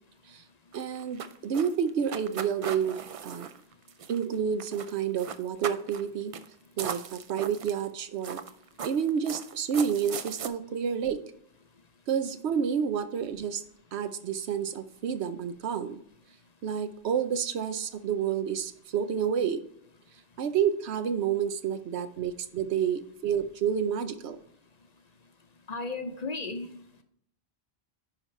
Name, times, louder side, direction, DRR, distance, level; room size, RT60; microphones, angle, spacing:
sound 1, 0.7-4.3 4.6-4.9 5.2-6.0 6.3-6.5 6.8-7.9 8.2-10.5, right 7 dB, 55° right, 0.4 m, -38 dB
voice 1, 0.7-3.5 4.1-6.3 6.8-8.4 8.8-11.2 12.1-13.6 13.9-16.0 16.6-19.7 20.4-24.4, right 7 dB, 85° right, 10 dB, 0.9 m, -29 dB
voice 2, 25.7-27.0, left 3 dB, 45° left, 7 dB, 0.7 m, -35 dB
9.9 x 5.0 x 3.2 m, 0.71 s
omnidirectional pair, 1.1 m